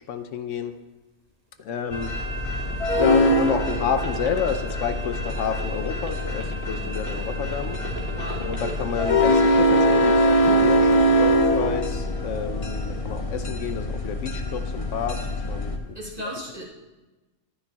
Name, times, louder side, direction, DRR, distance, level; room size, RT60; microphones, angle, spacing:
voice 1, 0.1-0.7 1.6-2.1 2.9-7.8 8.4-16.0, left 6 dB, 80° left, 8 dB, 1.0 m, -30 dB
sound 1, 1.6-9.8 10.2-10.9, right 2 dB, 55° right, 1.6 m, -37 dB
sound 2, 1.9-15.8, equal, 30° left, 0.9 m, -23 dB
voice 2, 8.1-8.4 15.9-16.6, equal, 30° right, -5 dB, 2.5 m, -35 dB
12.5 x 9.8 x 2.9 m, 1.1 s
omnidirectional pair, 1.3 m